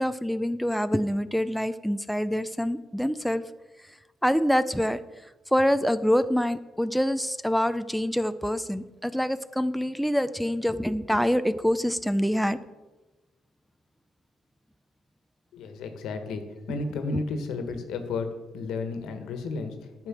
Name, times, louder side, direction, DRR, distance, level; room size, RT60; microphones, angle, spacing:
voice 1, 0.0-3.4 4.2-5.0 5.5-12.6, equal, ahead, 11 dB, 0.5 m, -25 dB
voice 2, 15.5-20.1, left 3 dB, 85° left, 7 dB, 1.4 m, -33 dB
10.5 x 6.7 x 6.2 m, 1.1 s
cardioid pair, 90°, 0 cm